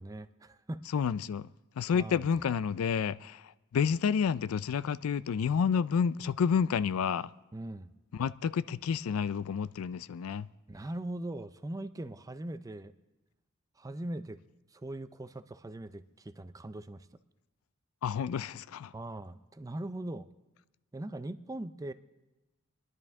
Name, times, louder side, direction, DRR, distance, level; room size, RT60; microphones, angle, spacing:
voice 1, 0.0-0.9 1.9-2.2 7.5-7.9 10.7-12.9 13.8-14.4 14.7-17.1 18.9-20.3 20.9-21.9, right 1 dB, 15° right, 0.4 m, -40 dB
voice 2, 0.9-1.5 1.8-3.4 3.7-7.3 8.1-10.5 18.0-18.9, left 6 dB, 85° left, 0.4 m, -29 dB
26.5 x 11.0 x 3.6 m
head